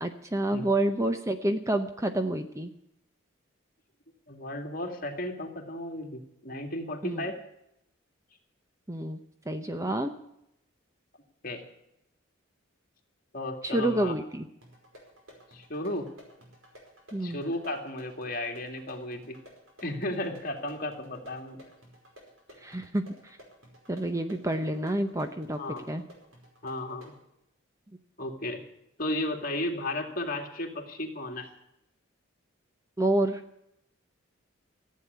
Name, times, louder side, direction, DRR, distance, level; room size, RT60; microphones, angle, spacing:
voice 1, 0.0-2.7 7.0-7.3 8.9-9.2 9.5-10.2 13.6-14.5 17.1-17.4 22.6-23.4 23.9-25.6 25.9-26.0 33.0-33.4, right 1 dB, 15° right, 8 dB, 0.7 m, -28 dB
voice 2, 4.3-7.4 11.4-11.6 13.3-14.1 15.5-16.1 17.2-19.4 19.8-21.6 25.5-25.8 26.6-27.2 28.2-28.6 29.0-31.5, left 1 dB, 45° left, 3 dB, 2.3 m, -34 dB
sound 1, 14.6-27.2, equal, 90° right, 5.1 m, -54 dB
15.0 x 8.5 x 9.4 m, 0.80 s
head